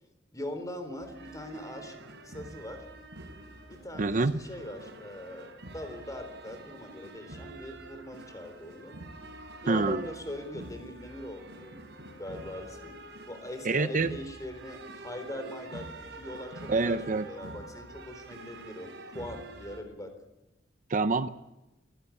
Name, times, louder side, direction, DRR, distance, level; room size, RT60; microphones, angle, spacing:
voice 1, 0.3-2.0 2.2-2.8 3.7-9.0 9.6-13.0 13.3-20.1, left 1 dB, 20° left, 8 dB, 3.7 m, -41 dB
sound 1, 1.0-19.8, right 2 dB, 65° right, 4.8 m, -46 dB
voice 2, 4.0-4.4 9.7-10.0 13.6-14.1 16.7-17.3 20.9-21.3, right 3 dB, 45° right, 11 dB, 0.7 m, -26 dB
25.0 x 16.5 x 8.5 m, 1.0 s
head